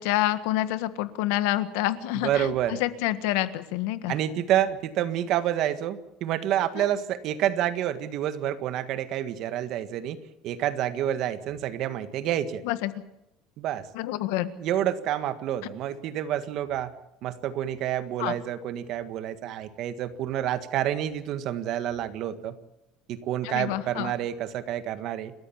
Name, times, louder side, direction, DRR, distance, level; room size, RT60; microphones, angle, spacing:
voice 1, 0.0-2.5 2.8-4.1 6.8-6.9 12.6-12.9 13.9-14.5 18.2-18.3 23.4-24.1, left 15 dB, 85° left, 12 dB, 1.6 m, -27 dB
voice 2, 2.2-2.8 4.1-12.6 13.6-13.9 14.6-16.9 17.2-22.6 23.1-25.3, right 11 dB, 50° right, 11 dB, 1.7 m, -28 dB
29.5 x 13.5 x 7.2 m, 0.90 s
cardioid pair, 160°, 0 cm